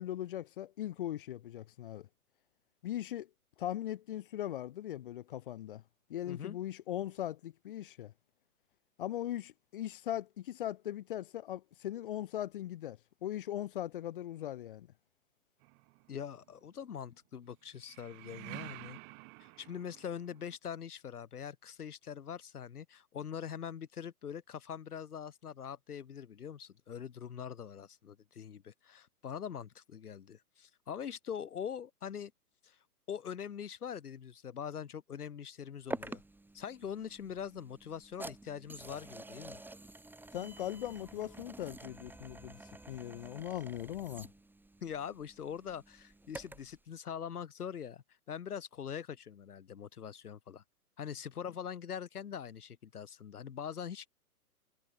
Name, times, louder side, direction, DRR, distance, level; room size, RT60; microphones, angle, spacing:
voice 1, 0.0-2.1 2.8-3.3 3.6-5.8 6.1-8.1 9.0-14.9 40.3-42.6 42.9-44.3, left 12 dB, 40° left, 0.5 m, -39 dB
voice 2, 6.3-6.6 16.1-19.0 19.4-32.3 32.6-32.8 33.1-36.2 36.5-39.6 44.8-50.6 51.0-54.1, left 8 dB, 75° left, 1.9 m, -43 dB
sound 1, 15.6-16.4 17.8-20.5, right 40 dB or more, 25° right, 0.8 m, -50 dB
sound 2, 35.9-46.8, right 2 dB, 5° right, 6.2 m, -48 dB
hypercardioid pair, 130°, 46 cm